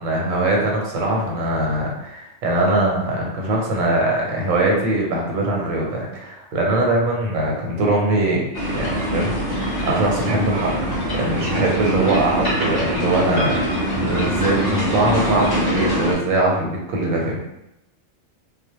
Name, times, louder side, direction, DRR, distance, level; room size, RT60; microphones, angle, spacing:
voice 1, 0.0-10.7 11.1-17.4, right 2 dB, 90° right, -1 dB, 1.0 m, -22 dB
sound 1, 8.5-16.1, equal, 25° left, 0.6 m, -23 dB
2.2 x 2.1 x 2.9 m, 0.85 s
omnidirectional pair, 1.3 m